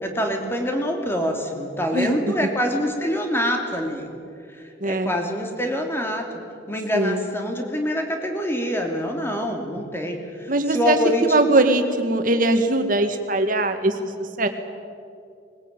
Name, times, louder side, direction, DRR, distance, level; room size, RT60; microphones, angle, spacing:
voice 1, 0.0-4.1 4.5-6.4 6.7-11.5, equal, 15° left, 3 dB, 2.8 m, -25 dB
voice 2, 1.9-2.3 4.8-5.1 6.9-7.3 10.5-14.5, right 2 dB, 50° right, 7 dB, 1.9 m, -21 dB
20.5 x 19.5 x 9.0 m, 2.4 s
head